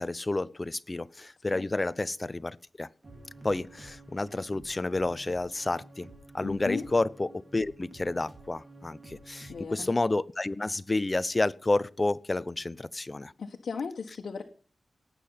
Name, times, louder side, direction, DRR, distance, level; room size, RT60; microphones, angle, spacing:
voice 1, 0.0-2.9 3.4-6.1 6.3-13.3, left 2 dB, 25° left, 0.6 m, -30 dB
sound 1, 3.0-9.8, right 2 dB, 30° right, 4.0 m, -51 dB
voice 2, 6.4-6.9 9.5-9.9 13.4-14.4, left 5 dB, 80° left, 1.4 m, -36 dB
18.5 x 8.5 x 5.7 m
wide cardioid pair, 110°, 0 cm